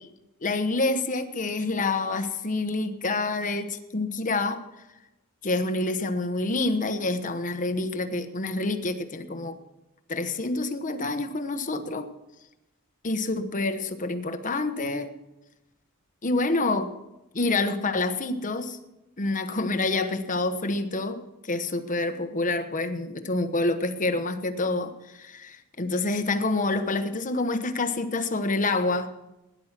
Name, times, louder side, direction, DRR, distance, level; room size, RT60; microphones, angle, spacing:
voice 1, 0.4-4.6 5.4-9.6 10.1-12.1 13.0-15.1 16.2-16.9 17.3-18.8 19.2-29.1, left 2 dB, 35° left, 1.1 m, -27 dB
17.0 x 10.5 x 6.0 m
head